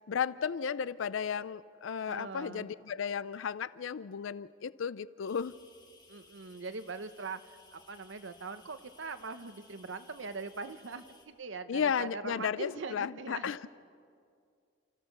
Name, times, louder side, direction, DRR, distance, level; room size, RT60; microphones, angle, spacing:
voice 1, 0.1-5.5 11.7-13.7, left 7 dB, 90° left, 17 dB, 0.4 m, -34 dB
voice 2, 2.1-2.7 6.1-13.5, right 4 dB, 80° right, 10 dB, 0.9 m, -42 dB
sound 1, 5.2-11.2, left 3 dB, 20° left, 2.2 m, -61 dB
29.5 x 14.5 x 6.7 m, 2.3 s
head